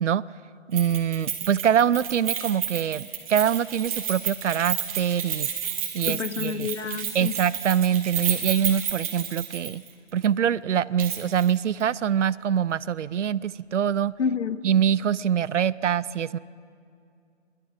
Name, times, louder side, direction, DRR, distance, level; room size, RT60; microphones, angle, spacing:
Keys jangling, 0.7-9.9 10.2-10.3 11.0-11.5 11.8-11.9, right 9 dB, 30° right, 1.7 m, -31 dB
voice 1, 0.7-5.5 5.9-6.7 7.1-9.8 10.1-14.1 14.6-16.4, right 9 dB, 75° right, 20 dB, 0.6 m, -24 dB
voice 2, 6.1-7.3 14.2-14.6, left 6 dB, 70° left, 15 dB, 0.8 m, -28 dB
23.0 x 12.0 x 5.1 m, 2.4 s
hypercardioid pair, 160°, 37 cm